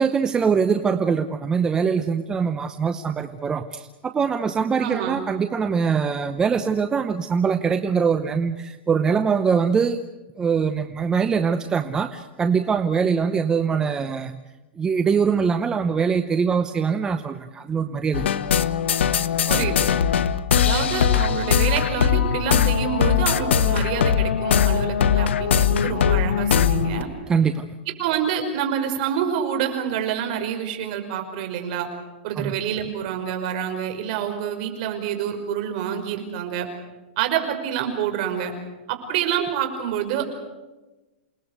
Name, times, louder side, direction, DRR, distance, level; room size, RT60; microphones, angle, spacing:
voice 1, 0.0-10.1 10.4-14.3 14.8-18.3 27.3-27.7 32.4-32.5, right 6 dB, 10° right, 9 dB, 0.8 m, -23 dB
voice 2, 4.8-5.2 19.5-19.8 20.5-27.1 28.0-31.9 32.2-36.7 37.2-38.5 38.9-40.2, right 9 dB, 45° right, 5 dB, 5.4 m, -27 dB
sound 1, 18.1-27.0, left 8 dB, 90° left, 1.3 m, -20 dB
28.5 x 19.5 x 8.1 m, 1.1 s
supercardioid pair, 160°, 6 cm